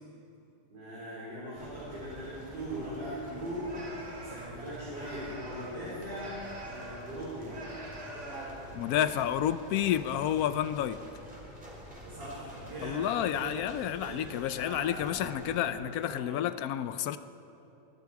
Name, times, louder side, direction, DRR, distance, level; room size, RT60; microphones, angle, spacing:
voice 1, 0.7-6.4 6.6-7.6 12.0-16.4, equal, 75° right, -10 dB, 4.6 m, -40 dB
sound 1, 1.5-15.6, equal, 5° right, 3.6 m, -48 dB
sound 2, 3.5-7.2 7.4-10.1 10.4-10.7 11.8-12.2 12.5-13.3, right 1 dB, 40° right, 2.2 m, -46 dB
voice 2, 8.7-11.0 12.8-17.2, left 11 dB, 70° left, 13 dB, 0.9 m, -30 dB
23.0 x 12.0 x 4.7 m, 2.9 s
omnidirectional pair, 2.0 m